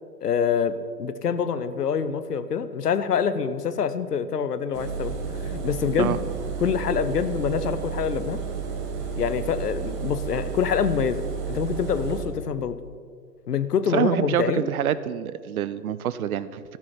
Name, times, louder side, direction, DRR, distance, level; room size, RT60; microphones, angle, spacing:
voice 1, 0.2-6.2 6.6-8.4 9.2-12.8 13.5-14.7, left 7 dB, 70° left, 13 dB, 0.9 m, -26 dB
Engine, 4.7-12.2, right 6 dB, 25° right, 1.2 m, -32 dB
voice 2, 13.9-16.6, right 10 dB, 60° right, 16 dB, 0.6 m, -26 dB
14.0 x 6.1 x 5.9 m, 2.1 s
figure-of-eight pair, 120°, 49 cm